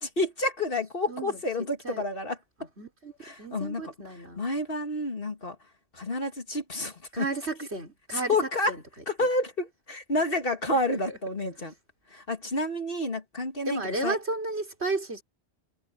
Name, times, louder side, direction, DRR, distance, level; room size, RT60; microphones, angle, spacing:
voice 1, 0.0-2.4 3.2-3.9 4.4-5.6 5.9-7.3 8.1-8.7 9.1-11.7 12.1-14.2, left 2 dB, 55° left, 2.6 m, -29 dB
voice 2, 1.1-1.4 1.8-2.0 2.8-3.1 3.4-4.4 7.1-8.8 9.2-9.3 10.9-11.2 13.7-15.2, right 3 dB, 75° right, 4.5 m, -33 dB
omnidirectional pair, 1.1 m